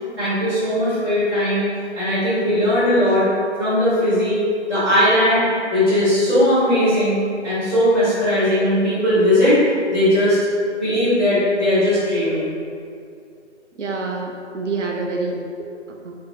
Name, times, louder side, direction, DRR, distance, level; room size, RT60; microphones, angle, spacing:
voice 1, 0.2-1.7 1.9-3.3 3.6-4.4 4.7-9.6 9.9-10.4 10.8-12.5, left 1 dB, ahead, -45 dB, 1.0 m, -18 dB
voice 2, 13.8-16.1, right 3 dB, 80° right, 1 dB, 0.6 m, -27 dB
3.6 x 2.9 x 2.8 m, 2.4 s
figure-of-eight pair, 170°, 35 cm